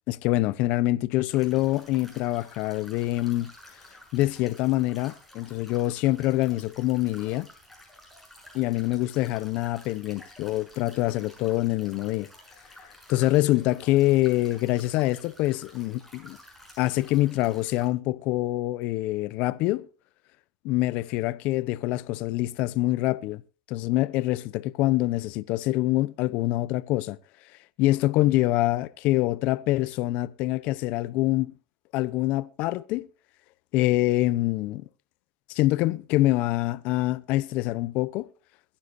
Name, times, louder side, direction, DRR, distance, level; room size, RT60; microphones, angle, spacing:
voice 1, 0.1-3.5 4.1-7.5 8.5-12.3 13.1-16.4 16.8-19.9 20.6-23.4 23.7-27.2 27.8-31.5 31.9-33.1 33.7-34.8 35.5-38.3, left 17 dB, 55° left, 0.7 m, -25 dB
sound 1, 1.3-17.9, left 1 dB, ahead, 6.6 m, -52 dB
22.5 x 10.0 x 2.7 m
supercardioid pair, 125°, 3 cm